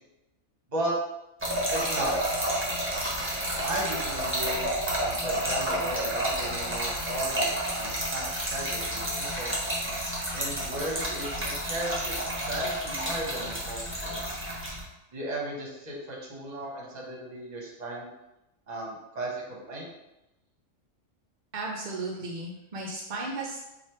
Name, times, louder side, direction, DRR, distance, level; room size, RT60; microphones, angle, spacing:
Trickle dribble / Fill (with liquid), 1.4-14.8, right 1 dB, 10° right, 0.8 m, -30 dB
voice 1, 1.7-2.1 3.6-4.7 5.0-9.5 10.3-14.2 15.1-18.1 18.7-19.9, right 1 dB, 40° right, -3 dB, 0.9 m, -35 dB
voice 2, 21.5-23.6, right 2 dB, 60° right, -2 dB, 0.5 m, -35 dB
3.2 x 2.5 x 4.3 m, 0.94 s
omnidirectional pair, 1.3 m